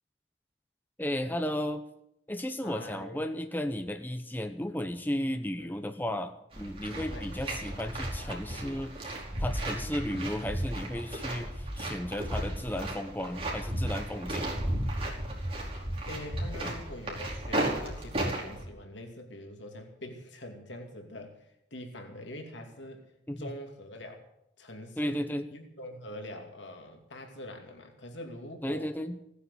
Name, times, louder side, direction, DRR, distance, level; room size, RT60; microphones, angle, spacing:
voice 1, 1.0-1.8 2.3-14.5 16.6-16.7 23.3-23.5 25.0-25.5 28.6-29.2, left 1 dB, 10° left, 7 dB, 0.9 m, -34 dB
voice 2, 2.6-3.2 5.6-5.7 7.1-7.2 16.1-21.4 21.7-23.0 23.4-24.2 24.6-25.2 25.5-28.9, left 1 dB, 80° left, 3 dB, 2.7 m, -44 dB
sound 1, 6.5-18.6, right 1 dB, 30° right, 4.8 m, -34 dB
17.0 x 9.8 x 8.2 m, 0.79 s
head